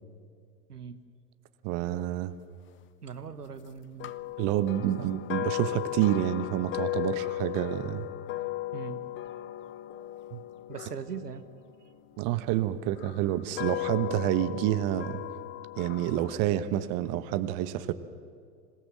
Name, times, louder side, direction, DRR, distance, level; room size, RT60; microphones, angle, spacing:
voice 1, 0.7-1.0 3.0-4.1 5.0-5.1 8.7-9.1 10.7-11.4, right 6 dB, 85° right, 11 dB, 1.3 m, -40 dB
voice 2, 1.6-2.3 4.4-8.1 10.3-10.4 12.2-15.2 15.8-17.9, right 13 dB, 40° right, 12 dB, 1.2 m, -28 dB
sound 1, 4.0-12.2 12.9-16.4, left 15 dB, 25° left, 0.7 m, -36 dB
26.5 x 18.0 x 7.6 m, 2.2 s
figure-of-eight pair, 85°, 46 cm